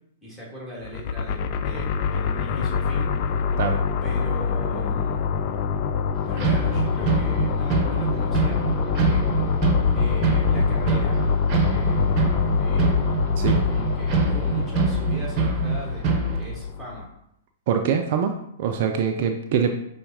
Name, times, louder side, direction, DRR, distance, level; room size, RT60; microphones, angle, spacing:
voice 1, 0.2-3.1 4.0-5.3 6.2-9.6 9.9-12.2 12.5-13.0 13.5-17.1, right 1 dB, 5° left, -6 dB, 1.7 m, -39 dB
sound 1, 0.8-17.0, left 6 dB, 40° left, 0.3 m, -25 dB
sound 2, 6.4-16.4, right 3 dB, 35° right, 0.9 m, -24 dB
voice 2, 17.7-19.7, right 7 dB, 50° right, 5 dB, 0.4 m, -24 dB
5.6 x 3.5 x 2.7 m, 0.77 s
figure-of-eight pair, 105°, 0 cm